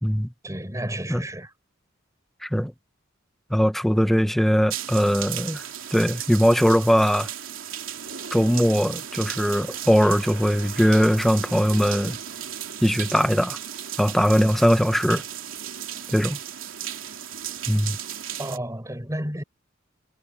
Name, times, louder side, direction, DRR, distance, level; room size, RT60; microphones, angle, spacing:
voice 1, 0.4-1.5 18.4-19.4, right 1 dB, 15° right, 5.3 m, -31 dB
voice 2, 2.4-2.7 3.5-5.6 5.9-7.3 8.3-12.2 12.8-13.6 14.0-15.2 16.1-16.4 17.7-18.0, equal, ahead, 1.3 m, -20 dB
sound 1, 4.7-18.6, right 10 dB, 75° right, 3.3 m, -35 dB
head